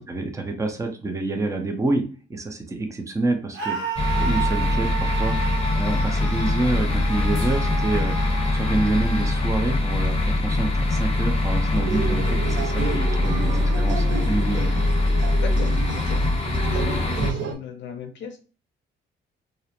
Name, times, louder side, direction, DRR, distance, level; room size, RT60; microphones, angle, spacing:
voice 1, 0.1-2.0 2.3-3.8 4.1-5.4 5.7-8.2 8.5-14.7, right 2 dB, 15° right, 5 dB, 0.5 m, -27 dB
Screaming, 3.5-9.5, right 6 dB, 85° right, 0.9 m, -32 dB
sound 1, 4.0-17.3, left 2 dB, 30° left, 0.8 m, -23 dB
sound 2, 11.7-17.6, right 7 dB, 65° right, 0.5 m, -31 dB
voice 2, 15.4-16.3 16.6-18.4, left 7 dB, 65° left, 5 dB, 0.5 m, -36 dB
2.5 x 2.0 x 2.8 m, 0.37 s
cardioid pair, 90°, 20 cm